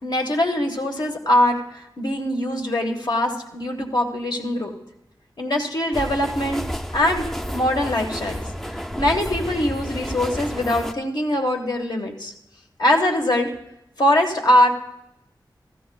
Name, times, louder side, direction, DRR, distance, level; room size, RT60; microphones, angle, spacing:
voice 1, 0.0-4.7 5.4-6.6 6.9-7.3 7.5-8.4 9.0-12.3 12.8-13.5 14.0-14.7, left 1 dB, 65° left, 2 dB, 1.3 m, -22 dB
sound 1, 5.9-10.9, equal, 5° left, 0.4 m, -31 dB
15.5 x 14.0 x 2.3 m, 0.83 s
wide cardioid pair, 80°, 8 cm